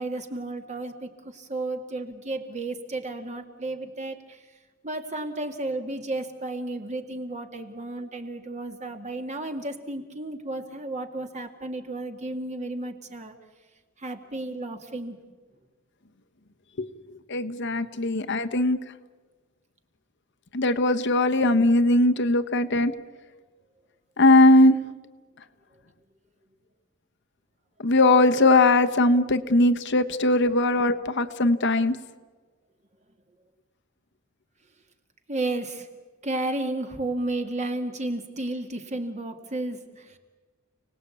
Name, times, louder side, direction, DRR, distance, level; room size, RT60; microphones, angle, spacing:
voice 1, 0.0-4.4 4.8-13.3 14.0-15.2 35.3-35.9 36.2-40.2, right 2 dB, 35° right, 5 dB, 2.1 m, -33 dB
voice 2, 16.8-18.8 20.5-22.9 24.2-24.8 27.8-32.0, left 2 dB, 60° left, 7 dB, 1.1 m, -20 dB
30.0 x 19.0 x 8.5 m, 1.4 s
head